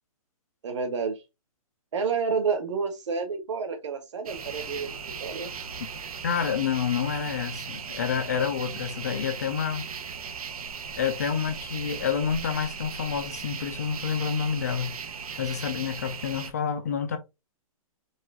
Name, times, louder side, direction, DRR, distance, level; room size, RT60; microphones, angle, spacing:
voice 1, 0.6-1.2 1.9-4.9 5.2-5.5, right 5 dB, 55° right, 1.3 m, -29 dB
sound 1, 4.3-16.5, right 6 dB, 90° right, 1.0 m, -38 dB
voice 2, 6.2-9.9 11.0-15.0 15.4-17.2, left 7 dB, 30° left, 0.4 m, -28 dB
4.7 x 2.5 x 3.7 m
hypercardioid pair, 175°, 18 cm